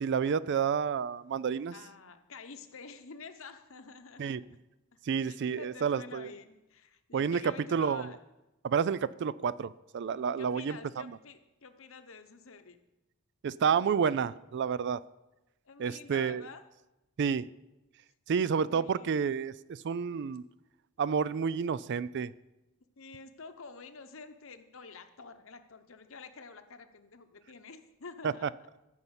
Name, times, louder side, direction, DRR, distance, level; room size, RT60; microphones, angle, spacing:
voice 1, 0.0-1.7 4.2-4.4 5.1-6.3 7.1-8.1 8.6-10.7 13.4-15.0 15.8-16.4 17.2-17.5 18.3-20.4 21.0-22.3 28.2-28.3, right 6 dB, 55° right, 18 dB, 0.4 m, -30 dB
voice 2, 1.7-4.5 5.2-8.2 10.3-12.8 15.6-16.6 18.3-19.3 23.0-28.5, left 4 dB, 70° left, 8 dB, 1.0 m, -49 dB
14.0 x 5.6 x 8.1 m, 0.99 s
head